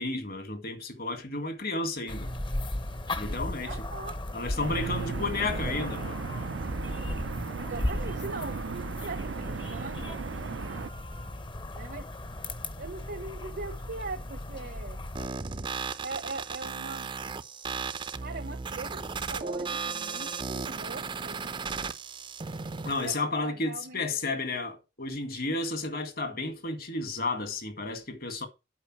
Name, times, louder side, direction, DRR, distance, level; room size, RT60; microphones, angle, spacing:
voice 1, 0.0-2.3 3.2-3.8 4.3-6.2 22.8-28.5, left 3 dB, 55° left, 1.9 m, -32 dB
sound 1, 2.1-15.3, left 1 dB, 25° left, 0.8 m, -36 dB
voice 2, 3.6-4.2 4.5-5.2 7.6-10.2 11.7-12.1 12.8-15.0 16.0-17.1 18.2-19.0 19.3-21.8 23.0-23.1 23.4-24.3, right 3 dB, 60° right, 0.9 m, -41 dB
sound 2, 4.6-10.9, right 5 dB, 80° right, 0.5 m, -36 dB
sound 3, 15.2-23.2, right 5 dB, 25° right, 0.6 m, -35 dB
8.4 x 5.2 x 6.1 m
head